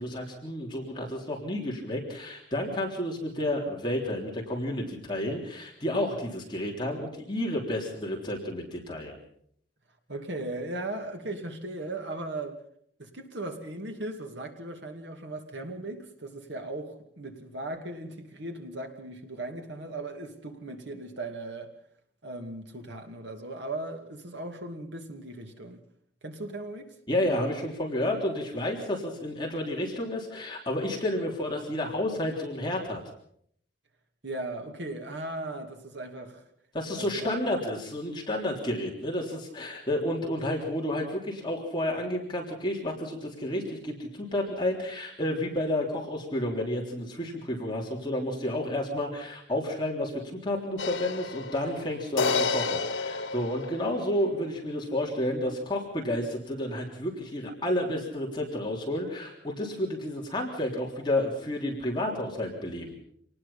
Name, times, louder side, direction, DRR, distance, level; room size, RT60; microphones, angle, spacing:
voice 1, 0.0-9.2 27.1-33.0 36.7-63.0, left 1 dB, 25° left, 3.5 m, -31 dB
voice 2, 10.1-12.6 13.0-21.7 22.2-25.8 26.2-26.9 34.2-36.4 37.0-37.4, right 2 dB, 65° right, 2.6 m, -37 dB
sound 1, 50.8-54.2, left 4 dB, 90° left, 1.5 m, -30 dB
26.5 x 19.0 x 5.7 m
head